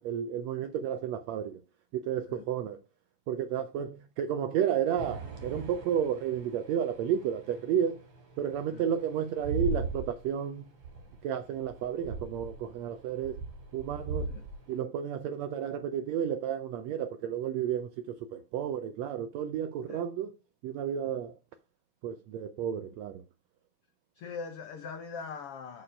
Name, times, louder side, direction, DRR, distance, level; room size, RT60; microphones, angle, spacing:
voice 1, 0.0-1.6 1.9-2.8 3.3-8.0 8.4-10.6 11.2-13.4 13.7-14.3 14.7-20.3 20.6-21.4 22.0-23.2, right 9 dB, 80° right, 1.5 m, -32 dB
sound 1, 5.0-14.8, right 3 dB, 45° right, 3.1 m, -40 dB
voice 2, 24.2-25.8, left 5 dB, 90° left, 1.2 m, -41 dB
6.6 x 6.0 x 5.0 m
omnidirectional pair, 3.7 m